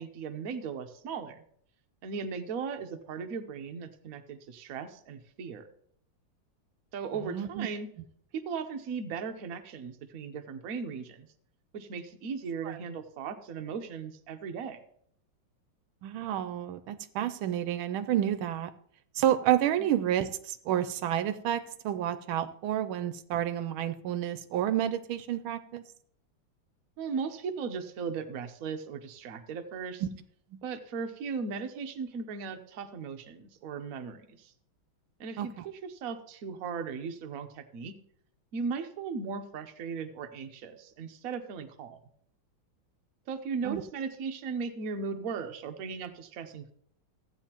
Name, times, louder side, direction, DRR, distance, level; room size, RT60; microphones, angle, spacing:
voice 1, 0.0-1.4 2.0-5.7 6.9-7.9 8.3-11.3 11.7-14.8 19.8-19.9 27.0-30.0 30.6-34.5 35.2-37.9 38.5-42.0 43.3-46.7, right 5 dB, 60° right, 6 dB, 1.0 m, -37 dB
voice 2, 7.2-7.7 12.6-12.8 16.0-18.7 19.1-25.9 30.0-30.1 30.5-30.6 35.4-35.7 43.6-43.8, right 11 dB, 80° right, 11 dB, 1.4 m, -30 dB
14.5 x 8.7 x 2.9 m, 0.64 s
omnidirectional pair, 2.3 m